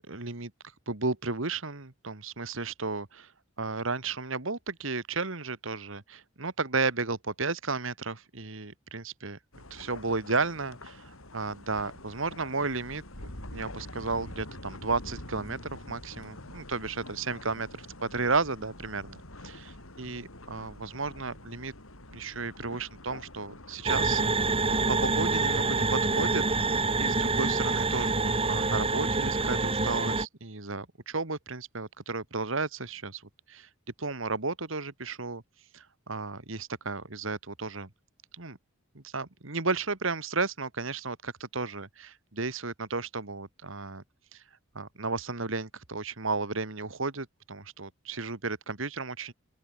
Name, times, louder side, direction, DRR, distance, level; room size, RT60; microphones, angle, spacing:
voice 1, 0.1-0.5 0.9-3.3 3.6-9.4 9.7-19.2 19.4-21.7 22.1-24.2 24.9-26.7 27.0-33.2 33.5-33.7 34.0-35.4 35.7-37.9 38.3-38.6 38.9-44.0 44.3-44.4 44.8-49.3, right 3 dB, 70° right, 2.0 m, -33 dB
sound 1, 9.5-27.0, left 1 dB, 85° left, 6.7 m, -46 dB
sound 2, 23.9-30.3, right 3 dB, 25° right, 2.3 m, -26 dB
open air
head